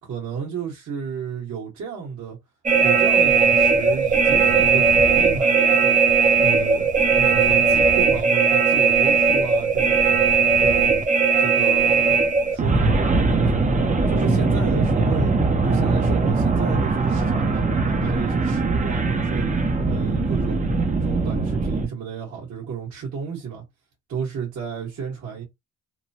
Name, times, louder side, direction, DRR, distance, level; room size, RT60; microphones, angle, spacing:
voice 1, 0.0-2.4 2.8-6.0 6.4-10.0 10.6-10.9 11.4-13.7 14.1-15.3 15.6-19.5 19.8-20.6 21.0-23.6 24.1-25.4, right 6 dB, 65° right, 1.5 m, -32 dB
sound 1, 2.7-21.9, right 4 dB, 25° right, 0.6 m, -19 dB
3.0 x 2.2 x 2.7 m
cardioid pair, 90°, 30 cm